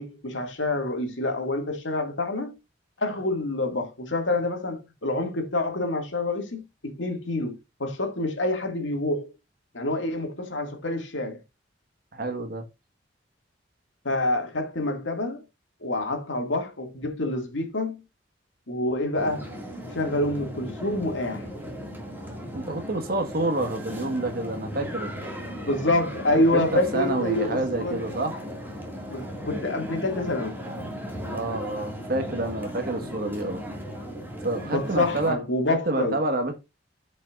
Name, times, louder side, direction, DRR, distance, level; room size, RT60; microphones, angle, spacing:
voice 1, 0.0-2.6 3.0-9.3 9.7-11.4 14.0-15.4 15.8-18.0 18.7-19.5 19.8-21.5 25.6-28.0 29.1-30.6 34.6-36.2, left 2 dB, 90° left, 2.1 m, -27 dB
voice 2, 12.1-12.7 22.5-25.3 26.5-28.3 31.3-33.6 34.4-35.4 35.9-36.6, right 2 dB, 55° right, 1.5 m, -28 dB
sound 1, 19.2-35.3, equal, 10° right, 2.0 m, -36 dB
13.5 x 5.5 x 2.4 m
head